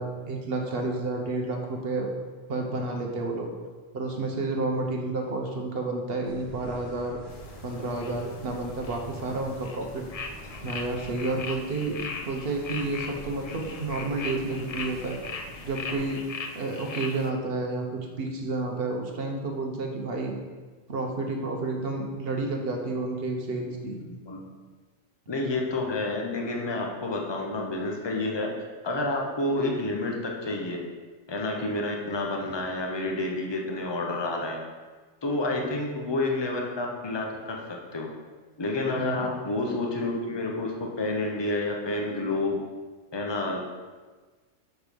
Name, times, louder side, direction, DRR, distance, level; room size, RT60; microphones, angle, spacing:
voice 1, 0.0-2.1 2.5-3.5 3.9-7.2 7.6-10.0 10.6-15.2 15.6-16.2 16.5-20.4 20.9-24.0 39.0-39.3, right 2 dB, 50° right, 1 dB, 1.2 m, -30 dB
sound 1, 6.2-16.1, right 1 dB, 20° right, 1.0 m, -46 dB
sound 2, 7.3-17.3, left 4 dB, 70° left, 0.3 m, -39 dB
voice 2, 23.9-24.4 25.3-28.5 28.8-30.8 31.3-34.6 35.2-37.6 37.9-38.1 38.6-42.6 43.1-43.6, left 2 dB, 25° left, 0 dB, 0.8 m, -29 dB
6.6 x 4.6 x 5.2 m, 1.4 s
omnidirectional pair, 1.3 m